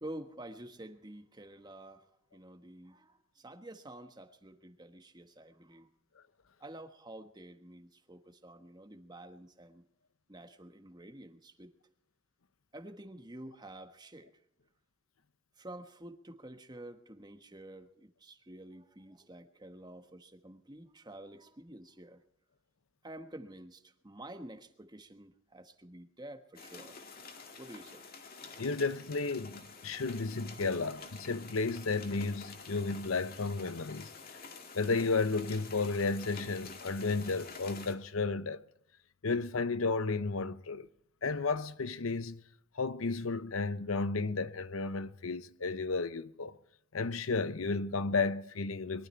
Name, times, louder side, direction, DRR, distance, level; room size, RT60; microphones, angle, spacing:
voice 1, 0.0-2.1 2.3-5.9 6.6-9.8 10.3-11.7 12.7-14.3 15.6-22.2 23.0-27.0 27.6-28.0, right 1 dB, 20° right, 1.3 m, -49 dB
sound 1, 26.5-37.9, left 4 dB, 45° left, 2.1 m, -49 dB
voice 2, 28.6-34.1 34.7-38.6 39.2-40.9 41.2-42.4 42.8-46.5 46.9-49.1, left 4 dB, 80° left, 0.8 m, -33 dB
22.5 x 12.5 x 4.4 m
head